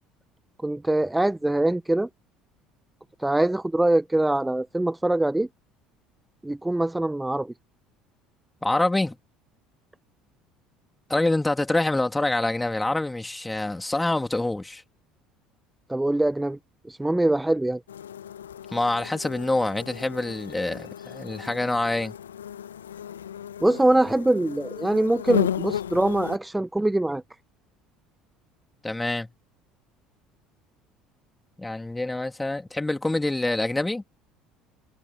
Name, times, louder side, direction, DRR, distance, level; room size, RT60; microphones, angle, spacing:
voice 1, 0.6-2.1 3.2-5.5 6.4-7.5 15.9-16.6 16.9-17.8 23.6-27.2, right 1 dB, 10° right, 1.1 m, -23 dB
voice 2, 8.6-9.2 11.1-14.8 18.7-22.2 28.8-29.3 31.6-34.0, left 2 dB, 10° left, 3.5 m, -26 dB
sound 1, 17.9-26.4, left 9 dB, 75° left, 0.6 m, -34 dB
figure-of-eight pair, 60°, 0 cm